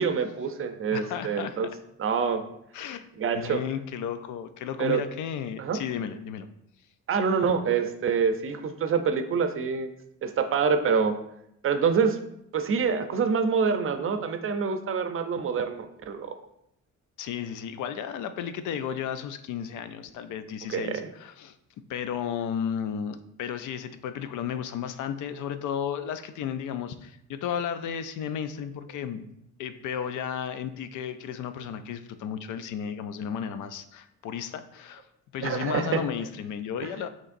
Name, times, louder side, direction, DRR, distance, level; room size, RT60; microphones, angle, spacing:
voice 1, 0.0-1.7 2.0-2.4 3.2-3.6 4.8-5.0 5.6-5.8 7.1-9.9 10.2-11.2 11.6-12.2 12.5-16.3 20.7-21.1 35.4-36.0 36.8-36.9, right 6 dB, 45° right, 8 dB, 0.5 m, -26 dB
voice 2, 0.9-1.6 2.7-3.1 3.3-6.5 17.2-21.5 21.9-29.2 29.6-35.0 35.3-37.1, left 8 dB, 80° left, 10 dB, 0.5 m, -33 dB
6.3 x 3.0 x 2.5 m, 0.77 s
cardioid pair, 90°, 30 cm